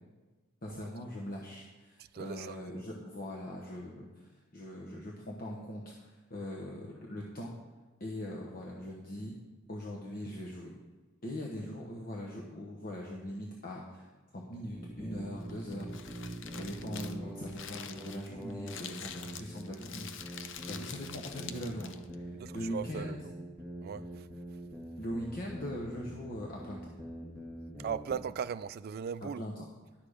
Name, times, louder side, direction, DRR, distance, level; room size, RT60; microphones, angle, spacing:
voice 1, 0.6-7.5 8.0-9.3 9.7-10.7 11.2-14.1 14.3-15.9 16.6-23.2 25.0-26.8 29.2-29.6, left 1 dB, 45° left, 1.1 m, -41 dB
voice 2, 2.0-2.6 22.3-23.2 23.8-24.3 27.8-29.4, right 7 dB, 50° right, 0.3 m, -38 dB
sound 1, 14.7-28.3, right 1 dB, 10° left, 1.9 m, -44 dB
Crumpling crinkling, 15.4-22.2, left 8 dB, 60° left, 0.6 m, -46 dB
11.5 x 6.8 x 5.0 m
head